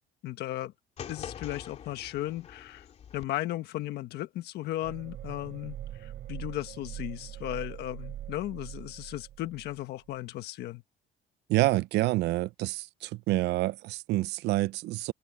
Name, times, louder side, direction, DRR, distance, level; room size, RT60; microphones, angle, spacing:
voice 1, 0.2-0.7 1.1-2.9 3.1-10.8, left 14 dB, 60° left, 1.4 m, -36 dB
sound 1, 1.0-3.3, left 8 dB, 35° left, 3.0 m, -44 dB
sound 2, 4.8-9.8 10.1-10.2, right 12 dB, 50° right, 6.4 m, -42 dB
voice 2, 11.5-15.1, right 18 dB, 65° right, 0.5 m, -28 dB
open air
cardioid pair, 175°, 19 cm